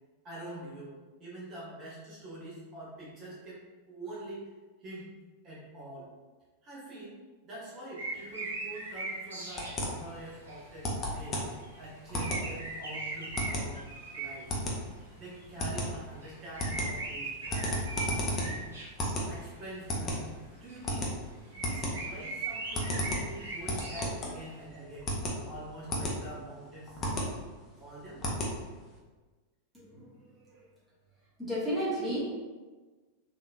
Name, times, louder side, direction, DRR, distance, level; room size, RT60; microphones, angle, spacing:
voice 1, 0.2-3.6 3.9-4.5 4.8-5.1 5.4-6.1 6.6-7.2 7.4-11.4 11.8-14.5 15.1-18.6 19.3-21.2 21.5-25.1 25.4-27.0 27.8-28.2, right 1 dB, 30° right, -7 dB, 1.1 m, -45 dB
sound 1, 8.0-10.9 11.1-14.6 15.0-15.1 15.4-15.5 16.2-19.7 20.7-20.8 21.5-24.5, right 3 dB, 70° right, 0.7 m, -39 dB
sound 2, 9.6-29.0, equal, 25° left, 0.7 m, -35 dB
voice 2, 29.7-30.7 31.4-32.4, equal, 5° right, -10 dB, 1.1 m, -34 dB
3.3 x 2.7 x 2.4 m, 1.3 s
figure-of-eight pair, 90°, 0 cm